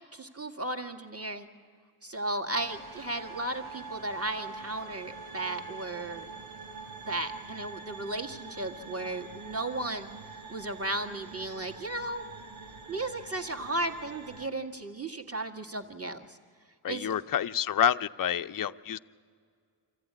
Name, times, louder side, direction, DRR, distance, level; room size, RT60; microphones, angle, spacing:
voice 1, 0.1-1.5 2.0-6.2 7.1-10.1 10.5-12.2 12.9-16.4 16.9-17.1, right 2 dB, 30° right, 3 dB, 1.8 m, -35 dB
sound 1, 2.5-14.5, right 4 dB, 90° right, 1.6 m, -45 dB
voice 2, 16.8-19.0, left 9 dB, 45° left, 11 dB, 0.5 m, -28 dB
25.0 x 14.5 x 9.7 m, 2.2 s
wide cardioid pair, 50°, 48 cm